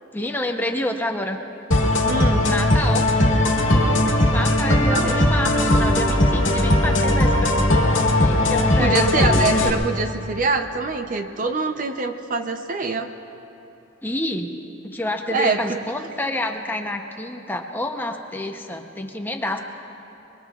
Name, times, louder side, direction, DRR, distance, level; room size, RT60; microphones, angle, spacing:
voice 1, 0.1-1.4 2.4-3.1 4.3-7.6 8.2-9.3 9.6-9.7 14.0-14.5 14.8-19.6, left 1 dB, 10° left, 3 dB, 0.8 m, -28 dB
sound 1, 1.7-9.7, left 1 dB, 75° left, 1.7 m, -18 dB
voice 2, 2.0-2.5 4.7-5.3 8.8-13.1 15.3-15.8, right 3 dB, 40° right, 6 dB, 0.6 m, -24 dB
24.5 x 23.0 x 2.4 m, 2.9 s
head